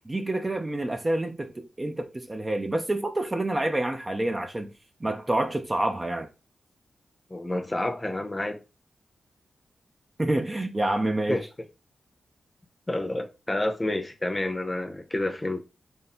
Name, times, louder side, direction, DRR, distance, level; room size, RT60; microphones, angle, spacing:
voice 1, 0.1-4.7 5.0-6.3 10.2-11.4, right 1 dB, 25° right, 0.5 m, -28 dB
voice 2, 7.3-8.6 11.3-11.4 12.9-15.6, left 1 dB, 20° left, 0.7 m, -29 dB
3.3 x 2.7 x 4.2 m
cardioid pair, 80°, 0 cm